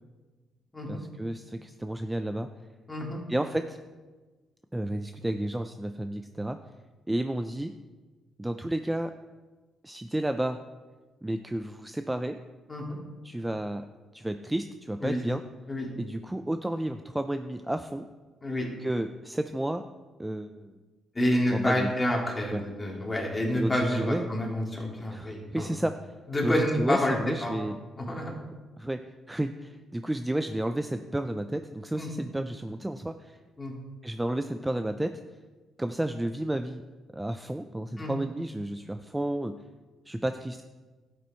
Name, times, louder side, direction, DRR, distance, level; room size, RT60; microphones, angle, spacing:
voice 1, 0.9-2.5 3.3-3.8 4.7-6.6 7.1-7.7 8.4-9.1 9.8-10.6 11.2-12.4 13.2-13.8 14.1-15.4 16.0-18.1 18.8-19.8 20.2-20.8 21.5-21.9 22.5-22.6 23.5-24.2 25.1-25.9 26.4-27.8 28.8-29.0 29.3-33.4 34.0-35.1 35.8-36.8 37.1-39.5 40.1-40.6, right 1 dB, 10° right, 8 dB, 0.5 m, -31 dB
voice 2, 2.9-3.2 12.7-13.0 15.0-15.2 15.7-15.9 18.4-18.7 21.1-25.7 26.3-27.5 28.0-28.3 32.0-32.1 33.6-33.7 38.0-38.1, left 1 dB, 20° left, -2 dB, 2.9 m, -28 dB
11.5 x 8.4 x 4.4 m, 1.3 s
cardioid pair, 90°, 0 cm